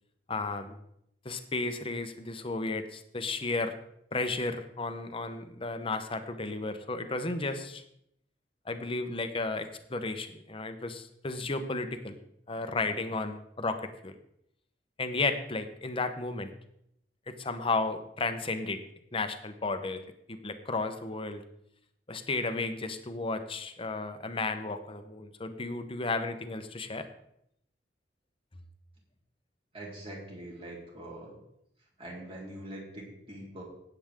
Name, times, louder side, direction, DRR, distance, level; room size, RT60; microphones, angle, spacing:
voice 1, 0.3-0.8 1.2-3.7 4.1-7.8 8.7-12.2 12.5-14.1 15.0-16.5 17.4-18.8 19.1-21.4 22.1-27.1, left 3 dB, 30° left, 8 dB, 1.0 m, -33 dB
voice 2, 29.7-31.4 31.8-33.6, right 1 dB, 30° right, -3 dB, 3.8 m, -43 dB
18.0 x 8.1 x 3.7 m, 0.75 s
head